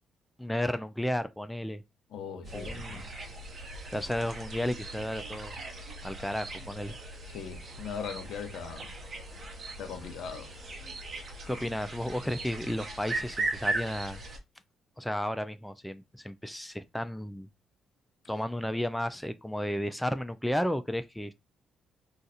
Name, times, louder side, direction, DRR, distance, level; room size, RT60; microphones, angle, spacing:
voice 1, 0.4-1.8 2.5-3.1 3.9-5.6 6.0-6.9 11.5-14.2 15.0-17.5 18.3-21.3, equal, 5° left, 0.3 m, -33 dB
voice 2, 2.1-3.1 7.3-8.9 9.8-10.5, left 6 dB, 80° left, 0.7 m, -40 dB
sound 1, 2.4-14.4, right 2 dB, 45° right, 1.0 m, -38 dB
2.5 x 2.4 x 4.1 m
cardioid pair, 90°, 0 cm